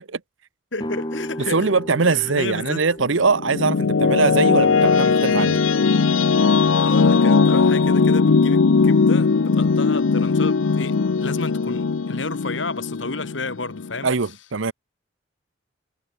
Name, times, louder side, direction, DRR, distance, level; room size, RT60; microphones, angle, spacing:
voice 1, 0.7-1.7 2.0-2.8 6.8-14.1, left 3 dB, 70° left, 3.0 m, -32 dB
sound 1, 0.8-6.5, left 1 dB, 25° left, 2.4 m, -37 dB
voice 2, 1.5-5.6 14.0-14.7, right 4 dB, 80° right, 0.9 m, -21 dB
sound 2, 3.0-14.0, left 4 dB, 85° left, 0.6 m, -19 dB
head